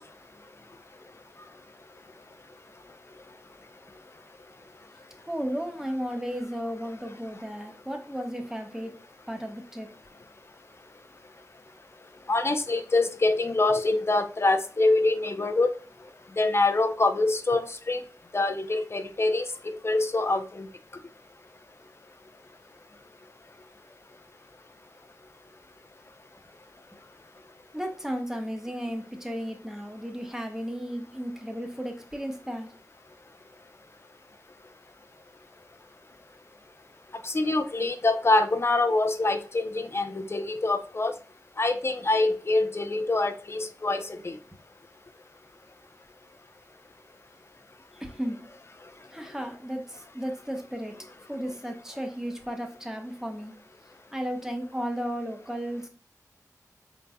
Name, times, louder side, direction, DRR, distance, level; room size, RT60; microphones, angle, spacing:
voice 1, 5.3-8.9 9.3-9.9 27.7-32.7 48.0-48.4 49.1-51.0 51.3-53.5 54.1-55.9, equal, 10° right, 1.1 m, -34 dB
voice 2, 12.3-15.8 16.4-18.0 18.3-20.7 37.2-41.1 41.6-44.4, left 2 dB, 45° left, 0.6 m, -25 dB
5.0 x 4.0 x 2.2 m
wide cardioid pair, 85°, 6 cm